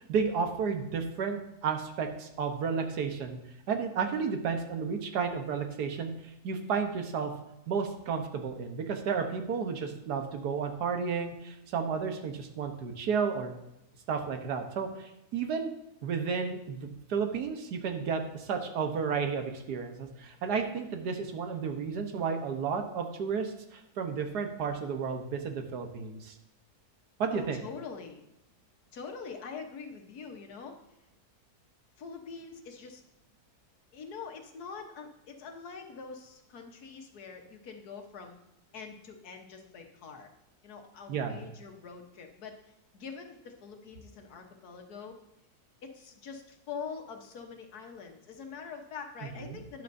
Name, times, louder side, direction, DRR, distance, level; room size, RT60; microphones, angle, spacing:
voice 1, 0.0-3.4 3.7-7.3 7.7-13.6 14.1-15.7 16.0-26.3 27.2-27.6 41.1-41.4 49.4-49.6, right 6 dB, 90° right, 5 dB, 1.6 m, -32 dB
voice 2, 27.3-28.2 28.9-30.8 32.0-33.0 33.9-38.4 38.7-40.3 40.6-45.2 45.8-49.8, left 5 dB, 75° left, 4 dB, 1.6 m, -44 dB
12.0 x 10.0 x 2.7 m, 0.87 s
omnidirectional pair, 1.7 m